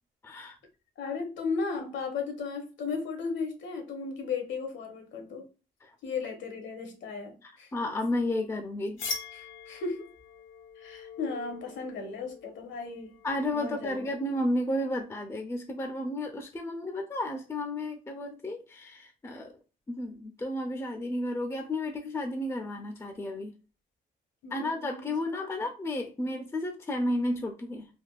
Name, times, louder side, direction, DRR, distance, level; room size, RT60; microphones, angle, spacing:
voice 1, 0.2-0.6 5.8-5.9 7.4-9.0 13.2-19.5 19.9-23.5 24.5-27.9, left 1 dB, 15° left, 0.4 m, -32 dB
voice 2, 1.0-5.5 6.0-7.7 9.3-10.1 10.8-13.1 13.5-14.1 24.4-25.1, left 4 dB, 70° left, 0.9 m, -35 dB
sound 1, 9.0-14.5, left 5 dB, 90° left, 1.0 m, -43 dB
3.4 x 2.2 x 2.3 m
cardioid pair, 90°, 20 cm